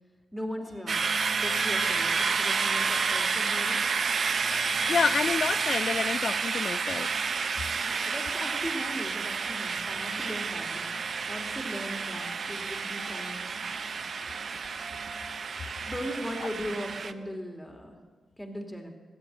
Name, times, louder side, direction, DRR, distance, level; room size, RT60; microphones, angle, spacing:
voice 1, 0.3-1.1 1.4-3.8 7.8-11.0 11.3-13.6 15.9-18.0 18.4-18.9, equal, 5° left, 3 dB, 2.6 m, -38 dB
Improvising with recorder, 0.6-4.2 4.7-5.5 5.8-6.6 6.9-7.5 7.9-8.5 8.9-10.1 10.4-10.6 10.9-11.5 11.9-12.5 12.9-13.4 13.9-14.4 14.8-15.3 15.7-17.3, right 3 dB, 90° right, 1.9 m, -48 dB
Wind instrument woodwind instrument, 0.9-5.7, right 1 dB, 35° right, 2.5 m, -38 dB
sound 1, 0.9-17.1, right 5 dB, 60° right, 0.6 m, -30 dB
voice 2, 4.9-7.1, left 6 dB, 60° left, 14 dB, 0.3 m, -28 dB
15.0 x 7.8 x 9.2 m, 1.4 s
cardioid pair, 65°, 0 cm